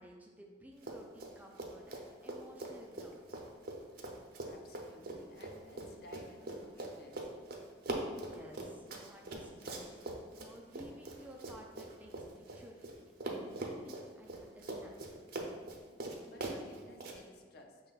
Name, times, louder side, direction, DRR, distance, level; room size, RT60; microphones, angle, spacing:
voice 1, 0.0-3.4 8.2-15.1, equal, 10° right, 0 dB, 0.3 m, -55 dB
Run, 0.8-1.3 1.6-12.9 13.2-17.2, right 2 dB, 55° right, 0.6 m, -42 dB
voice 2, 4.5-7.3 16.3-17.8, left 1 dB, 55° left, 2 dB, 0.5 m, -57 dB
6.1 x 2.2 x 3.9 m, 1.5 s
head